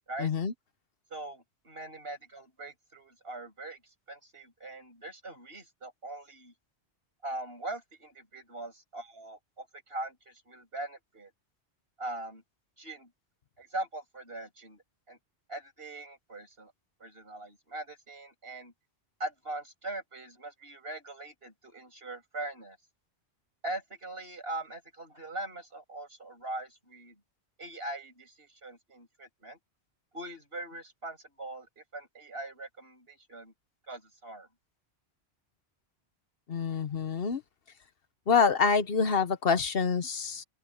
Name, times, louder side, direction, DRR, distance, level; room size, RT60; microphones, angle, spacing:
voice 1, 0.2-0.5 36.5-37.4 38.3-40.4, left 5 dB, 65° left, 1.1 m, -26 dB
voice 2, 1.1-6.5 7.2-11.3 12.0-12.4 12.8-13.1 13.6-15.2 15.5-16.7 17.0-18.7 19.2-22.8 23.6-27.2 27.6-29.6 30.1-33.5 33.9-34.5, right 2 dB, 65° right, 7.6 m, -41 dB
open air
omnidirectional pair, 1.1 m